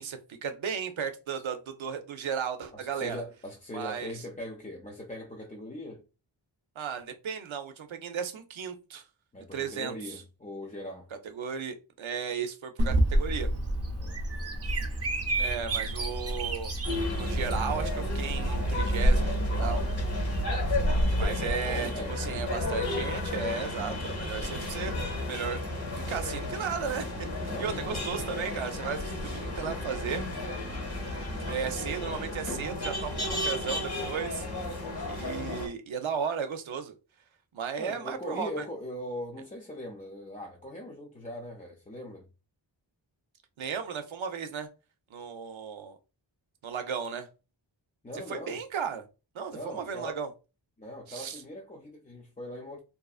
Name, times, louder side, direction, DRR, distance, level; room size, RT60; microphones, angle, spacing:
voice 1, 0.0-3.2 3.7-4.1 6.8-9.0 9.4-10.1 11.3-13.5 15.4-16.7 17.1-19.8 21.2-25.6 26.1-27.1 27.4-30.2 31.5-34.5 35.0-36.9 37.5-38.7 43.6-44.7 45.1-46.0 46.6-47.3 48.3-49.0 49.3-50.3 51.1-51.4, right 7 dB, 85° right, 0.6 m, -35 dB
voice 2, 2.7-6.0 9.3-11.1 14.0-14.5 21.3-22.2 27.4-28.0 37.8-42.3 48.0-48.6 49.5-50.2 50.8-52.8, left 1 dB, 20° left, 0.4 m, -41 dB
Bird vocalization bird call bird song, 12.8-21.2, right 1 dB, 35° right, 0.5 m, -28 dB
sound 1, 16.8-35.7, left 2 dB, 55° left, 1.0 m, -33 dB
2.6 x 2.5 x 2.3 m
wide cardioid pair, 70°, 46 cm